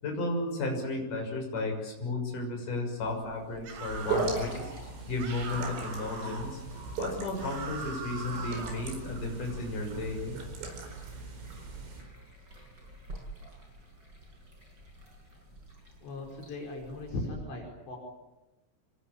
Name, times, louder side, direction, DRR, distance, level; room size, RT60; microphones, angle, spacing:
voice 1, 0.0-4.7 5.1-6.6 7.0-10.4, left 2 dB, 45° left, 1 dB, 7.9 m, -33 dB
sound 1, 3.0-17.3, right 1 dB, 20° right, 7.4 m, -50 dB
sound 2, 3.6-4.5 5.2-6.5 7.4-8.9, right 4 dB, 60° right, 5.5 m, -41 dB
sound 3, 3.8-12.0, right 3 dB, 85° right, 7.1 m, -38 dB
voice 2, 16.0-18.0, left 2 dB, 70° left, 0 dB, 7.1 m, -38 dB
27.0 x 22.0 x 8.8 m, 1.0 s
omnidirectional pair, 5.3 m